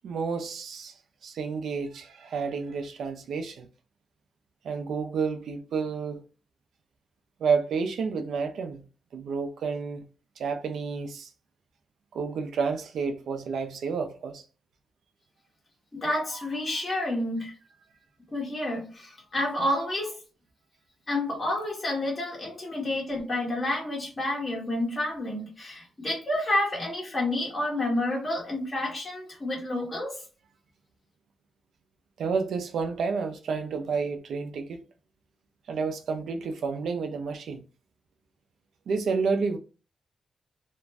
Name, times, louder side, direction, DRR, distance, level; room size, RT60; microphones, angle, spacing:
voice 1, 0.0-0.9 1.2-3.7 4.6-6.2 7.4-8.8 9.1-10.0 10.4-11.3 12.1-14.4 32.2-34.8 35.7-37.6 38.9-39.6, right 5 dB, 75° right, 0.5 m, -30 dB
voice 2, 15.9-17.5 18.3-20.1 21.1-30.2, left 1 dB, 25° left, 1.0 m, -29 dB
2.5 x 2.1 x 3.2 m
wide cardioid pair, 145°, 0 cm